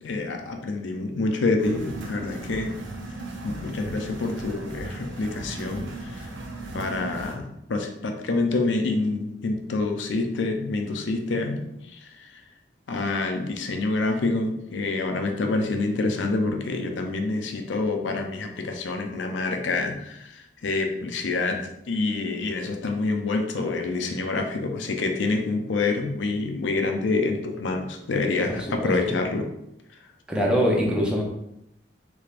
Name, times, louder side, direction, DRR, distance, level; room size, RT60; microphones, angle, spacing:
voice 1, 0.0-2.8 3.4-6.3 6.7-12.4 12.9-29.5, left 3 dB, 85° left, 4 dB, 0.5 m, -27 dB
sound 1, 1.6-7.3, right 2 dB, 80° right, 0.7 m, -37 dB
voice 2, 28.8-29.1 30.3-31.2, equal, 5° right, -2 dB, 0.6 m, -23 dB
3.4 x 3.4 x 2.4 m, 0.83 s
head